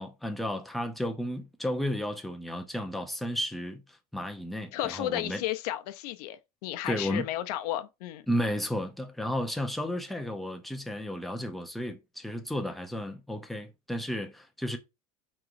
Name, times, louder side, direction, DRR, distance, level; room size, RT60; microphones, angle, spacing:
voice 1, 0.0-3.8 4.1-5.4 6.9-7.3 8.3-14.8, equal, ahead, 0.5 m, -33 dB
voice 2, 4.7-8.2, left 13 dB, 80° left, 0.6 m, -33 dB
4.8 x 3.0 x 2.5 m
supercardioid pair, 140°, 20 cm